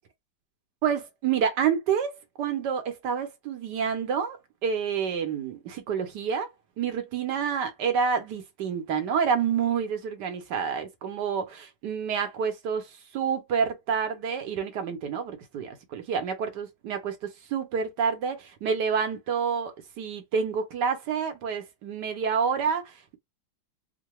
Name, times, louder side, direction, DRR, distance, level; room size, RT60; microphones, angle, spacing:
voice 1, 0.8-6.5 6.8-23.2, right 6 dB, 65° right, 1.2 m, -28 dB
3.7 x 2.2 x 3.0 m
omnidirectional pair, 2.2 m